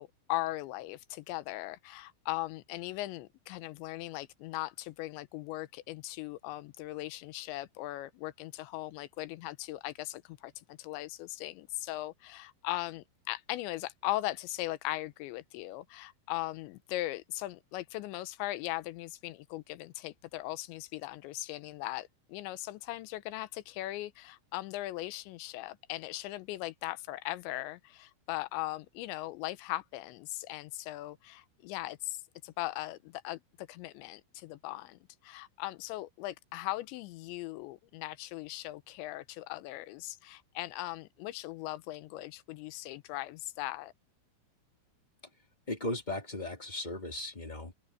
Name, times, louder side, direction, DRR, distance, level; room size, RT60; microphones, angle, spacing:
voice 1, 0.0-43.9, left 17 dB, 80° left, 3.0 m, -39 dB
voice 2, 45.7-47.7, left 1 dB, 25° left, 0.9 m, -37 dB
open air
omnidirectional pair, 5.4 m